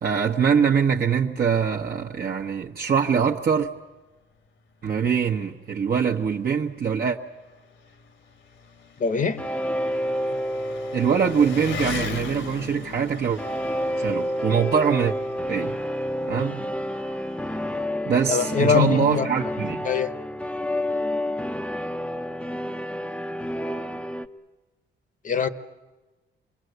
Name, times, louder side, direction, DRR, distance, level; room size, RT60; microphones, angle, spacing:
voice 1, 0.0-3.7 4.8-7.2 10.9-13.4 14.0-15.2 15.5-15.8 16.2-16.6 18.1-19.9, right 7 dB, 50° right, 1.1 m, -23 dB
Engine, 3.3-3.4 3.8-3.9 4.8-4.9 5.1-17.8, left 5 dB, 65° left, 1.7 m, -40 dB
voice 2, 9.0-9.4 18.3-19.3 19.8-20.1 25.2-25.5, left 6 dB, 40° left, 1.1 m, -22 dB
sound 1, 9.4-12.5 13.4-24.3, equal, 5° left, 0.7 m, -29 dB
27.5 x 22.0 x 8.0 m
cardioid pair, 120°, 20 cm